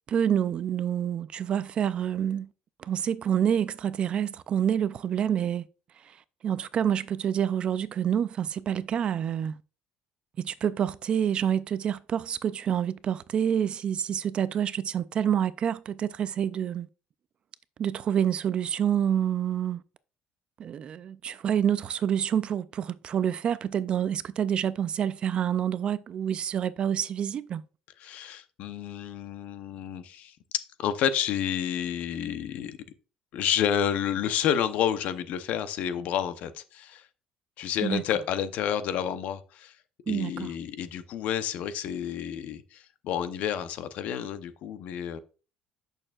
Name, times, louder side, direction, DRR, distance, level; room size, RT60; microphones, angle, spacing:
voice 1, 0.1-2.5 2.8-5.7 6.0-6.2 6.4-9.6 10.4-16.9 17.8-19.8 20.6-27.6 37.8-38.0 40.1-40.5, right 9 dB, 40° right, 0.3 m, -27 dB
voice 2, 28.0-32.8 33.3-37.1 37.6-39.8 40.1-45.2, left 9 dB, 60° left, 0.7 m, -30 dB
8.7 x 6.5 x 2.4 m
cardioid pair, 145°, 3 cm